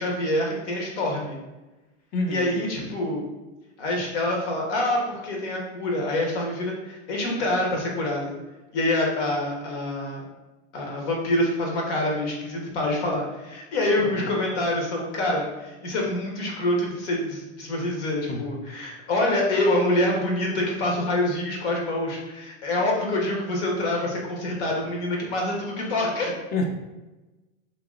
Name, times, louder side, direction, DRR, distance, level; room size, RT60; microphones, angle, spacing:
voice 1, 0.0-1.4 2.3-3.2 3.8-8.4 8.7-10.2 10.7-26.3, left 1 dB, 70° left, -1 dB, 1.3 m, -26 dB
voice 2, 2.1-2.6 14.0-14.3 18.3-18.4 26.5-26.7, left 2 dB, 25° left, 3 dB, 0.5 m, -28 dB
2.9 x 2.8 x 3.6 m, 1.1 s
supercardioid pair, 130°, 35 cm